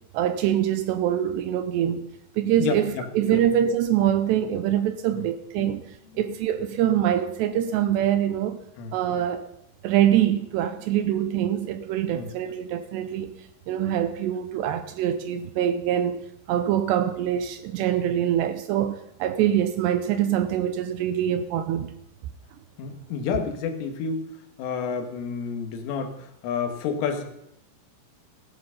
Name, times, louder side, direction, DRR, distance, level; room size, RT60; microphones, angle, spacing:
voice 1, 0.1-2.0 2.4-5.8 6.2-8.6 8.9-9.4 9.8-13.3 13.7-21.9, right 10 dB, 80° right, 2.5 m, -24 dB
voice 2, 2.6-3.0 3.3-3.4 5.1-5.2 5.6-5.8 8.8-8.9 12.1-12.3 22.8-24.3 24.6-27.2, left 6 dB, 80° left, 4.1 m, -30 dB
16.0 x 12.0 x 5.8 m
omnidirectional pair, 5.7 m